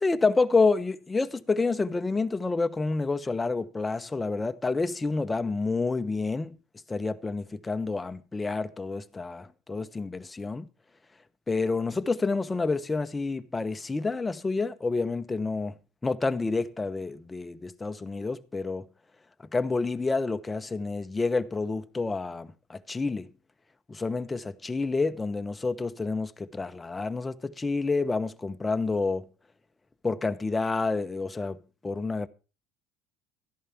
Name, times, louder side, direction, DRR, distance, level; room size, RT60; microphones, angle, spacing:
voice 1, 0.0-6.6 6.9-10.7 11.5-15.8 16.0-18.9 19.5-23.3 23.9-29.3 30.0-31.6 31.8-32.3, left 3 dB, 15° left, 0.9 m, -28 dB
13.5 x 11.0 x 4.4 m
supercardioid pair, 105°, 0 cm